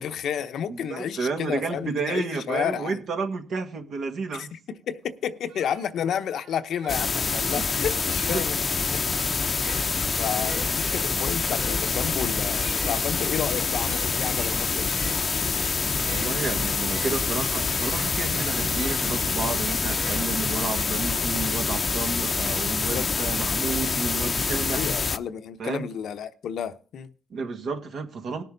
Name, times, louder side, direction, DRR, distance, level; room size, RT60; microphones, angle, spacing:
voice 1, 0.0-3.0 4.3-8.6 8.9-9.0 10.2-14.9 22.7-23.1 24.7-27.1, left 8 dB, 70° left, 0.9 m, -31 dB
voice 2, 0.7-4.5 7.5-7.7 16.1-24.9 25.6-25.9 27.3-28.4, right 4 dB, 65° right, 1.9 m, -31 dB
sound 1, 5.1-5.2 5.5-8.7 9.4-19.0 19.6-20.7, right 6 dB, 85° right, 1.2 m, -45 dB
sound 2, 6.9-25.2, left 4 dB, 35° left, 0.7 m, -26 dB
19.5 x 6.8 x 3.9 m
cardioid pair, 115°, 0 cm